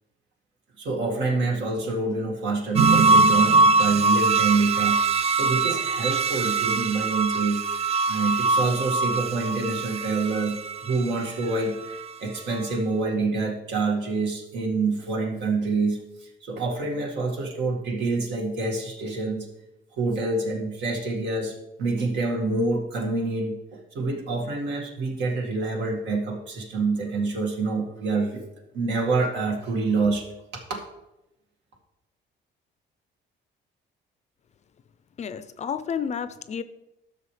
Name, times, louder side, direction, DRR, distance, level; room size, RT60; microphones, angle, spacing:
voice 1, 0.8-7.6 8.1-19.5 20.0-21.5 21.8-28.4 28.7-30.2 30.5-30.8, right 3 dB, 70° right, 1 dB, 2.0 m, -27 dB
sound 1, 2.8-12.1 12.5-12.6, right 3 dB, 35° right, 0.3 m, -22 dB
voice 2, 35.2-36.6, left 7 dB, 35° left, 13 dB, 0.5 m, -31 dB
12.0 x 6.2 x 3.3 m, 0.92 s
cardioid pair, 135°, 19 cm